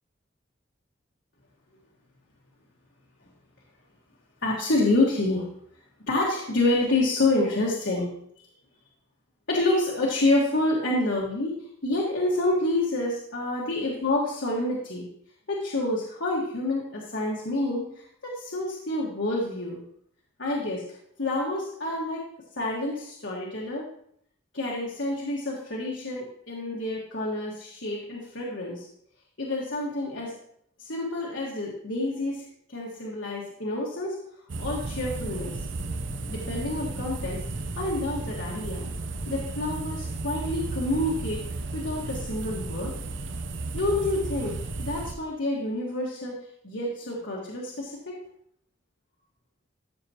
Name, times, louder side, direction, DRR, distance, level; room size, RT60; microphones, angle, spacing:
voice 1, 4.4-5.4 6.1-8.1 9.5-15.1 15.5-19.8 20.4-20.8 21.2-22.3 22.6-23.9 24.5-28.9 29.4-30.4 30.8-34.2 34.6-35.6 36.3-37.4 37.8-38.9 39.3-41.4 41.7-43.0 43.7-48.2, left 2 dB, 75° left, -3 dB, 1.7 m, -28 dB
sound 1, 34.5-45.1, right 2 dB, 80° right, 0.8 m, -34 dB
14.0 x 6.8 x 2.9 m, 0.68 s
head